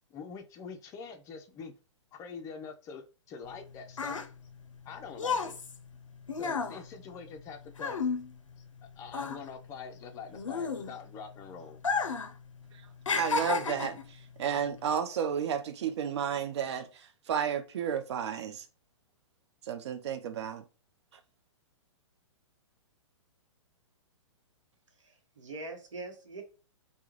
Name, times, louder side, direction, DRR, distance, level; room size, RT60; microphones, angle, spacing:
voice 1, 0.1-1.7 2.1-4.2 4.9-5.6 6.3-8.1 9.0-11.8, left 5 dB, 20° left, 0.4 m, -44 dB
sound 1, 3.5-8.8 9.1-11.2 11.7-12.3 12.6-14.1 14.8-15.0, left 5 dB, 90° left, 0.4 m, -33 dB
voice 2, 13.1-18.7 19.6-20.6, right 8 dB, 60° right, 0.5 m, -32 dB
voice 3, 25.0-26.4, right 3 dB, 75° right, 0.9 m, -43 dB
2.2 x 2.1 x 3.0 m
figure-of-eight pair, 120°, 16 cm